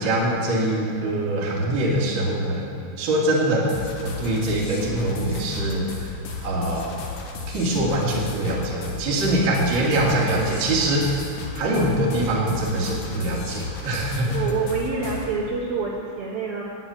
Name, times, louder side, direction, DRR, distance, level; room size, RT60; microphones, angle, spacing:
voice 1, 0.0-2.7 3.0-6.2 6.4-7.1 7.5-11.2 11.5-14.3, right 1 dB, 40° right, -4 dB, 1.9 m, -23 dB
sound 1, 3.7-15.4, left 4 dB, 80° left, 1.6 m, -35 dB
voice 2, 14.3-16.6, right 5 dB, 65° right, -4 dB, 2.5 m, -27 dB
9.9 x 9.6 x 8.6 m, 2.7 s
omnidirectional pair, 5.5 m